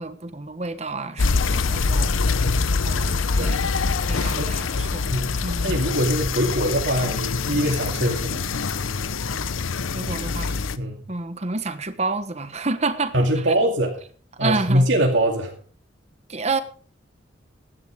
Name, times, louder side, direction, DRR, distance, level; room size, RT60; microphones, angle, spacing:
voice 1, 0.0-2.1 2.8-3.6 4.1-5.1 5.4-5.7 9.9-10.6 11.1-13.5 14.4-14.9 16.3-16.6, right 3 dB, 35° right, 1.2 m, -29 dB
sound 1, 1.2-10.8, left 4 dB, 85° left, 0.8 m, -24 dB
voice 2, 5.1-8.4 10.8-11.0 13.1-14.0 14.4-15.5, right 1 dB, 70° right, 2.4 m, -23 dB
15.5 x 11.5 x 3.6 m
head